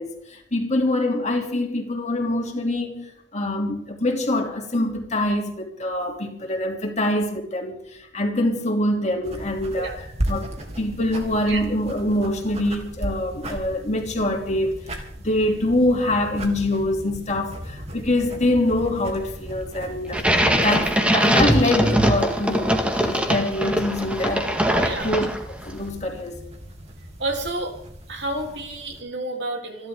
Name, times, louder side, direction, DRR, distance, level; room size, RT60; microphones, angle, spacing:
voice 1, 0.0-10.0 10.3-20.3 20.6-24.5 25.0-26.4, left 1 dB, 35° left, 3.2 m, -25 dB
sound 1, 9.2-29.0, right 1 dB, 35° right, 3.2 m, -36 dB
sound 2, 20.1-25.6, equal, 5° right, 2.1 m, -21 dB
voice 2, 24.8-25.2 27.2-27.7 28.1-29.9, right 2 dB, 65° right, 3.7 m, -30 dB
28.0 x 12.0 x 3.9 m
head